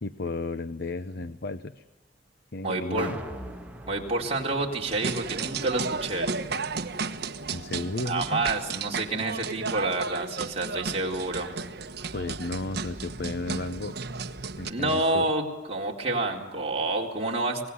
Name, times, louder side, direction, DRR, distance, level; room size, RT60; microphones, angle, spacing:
voice 1, 0.0-1.8 2.5-3.2 7.5-8.5 12.1-14.0 14.6-15.3, left 2 dB, 60° left, 13 dB, 0.8 m, -33 dB
voice 2, 2.6-3.1 3.9-6.3 8.1-11.5 14.6-15.4 15.7-17.7, right 2 dB, 35° right, -1 dB, 4.1 m, -28 dB
sound 1, 3.0-9.2 9.6-9.7, right 1 dB, 5° right, 1.8 m, -45 dB
sound 2, 4.9-14.7, right 4 dB, 60° right, 1.3 m, -34 dB
25.5 x 19.0 x 9.8 m, 1.1 s
head